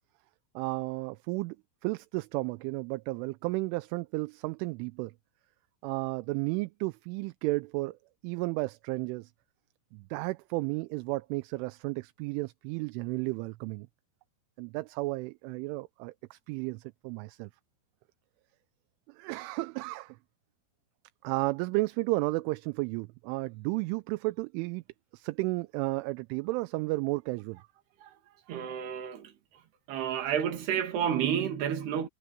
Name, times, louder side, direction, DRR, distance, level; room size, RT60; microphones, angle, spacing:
voice 1, 0.6-1.6 1.8-5.1 5.8-8.0 8.2-9.3 9.9-13.9 14.6-17.5 19.1-20.2 21.2-24.8 25.1-27.6, right 23 dB, 85° right, 3.0 m, -33 dB
voice 2, 28.5-29.3 29.9-32.1, right 9 dB, 60° right, 4.1 m, -30 dB
omnidirectional pair, 5.8 m